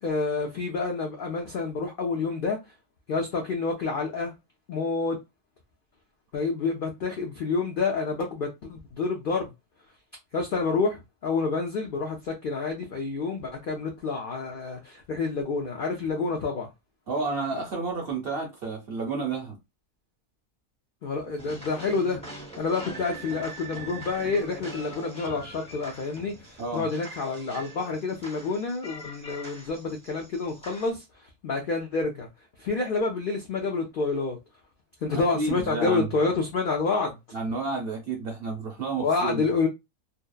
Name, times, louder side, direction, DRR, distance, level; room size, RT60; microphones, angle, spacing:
voice 1, 0.0-2.6 3.1-4.3 4.7-5.2 6.3-9.5 10.3-16.7 21.0-22.2 22.6-31.0 31.4-32.3 32.6-34.4 35.0-37.2 39.0-39.7, left 4 dB, 75° left, 0.5 m, -28 dB
voice 2, 17.1-19.6 26.6-26.9 35.1-36.1 37.3-39.4, right 3 dB, 60° right, 0.6 m, -31 dB
sound 1, 21.4-30.9, right 1 dB, 10° left, 0.4 m, -43 dB
2.7 x 2.0 x 2.2 m
omnidirectional pair, 1.5 m